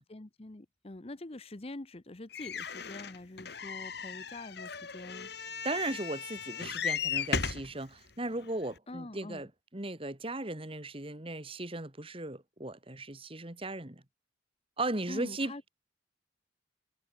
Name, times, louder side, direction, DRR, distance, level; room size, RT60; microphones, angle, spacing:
voice 1, 0.0-5.6 8.9-9.4 15.1-15.6, left 2 dB, 30° left, 0.9 m, -45 dB
sound 1, 2.3-7.7 8.4-8.5 8.8-8.9, left 6 dB, 60° left, 2.0 m, -36 dB
voice 2, 5.6-14.0 14.8-15.7, right 2 dB, 30° right, 2.2 m, -37 dB
head